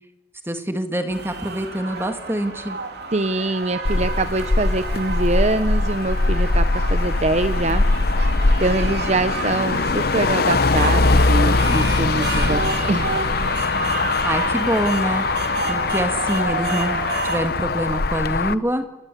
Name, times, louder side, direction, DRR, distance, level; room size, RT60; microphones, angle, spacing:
voice 1, 0.5-2.8 14.2-15.2 15.7-18.8, right 1 dB, 10° right, 7 dB, 1.9 m, -25 dB
sound 1, 1.1-17.5, right 4 dB, 55° right, 3.1 m, -30 dB
voice 2, 3.1-6.6 6.9-7.8 8.6-12.6 12.9-13.1, right 2 dB, 35° right, 11 dB, 0.8 m, -23 dB
Motor vehicle (road), 3.9-18.5, left 3 dB, 50° left, 0.8 m, -21 dB
29.5 x 23.0 x 8.4 m, 1.1 s
head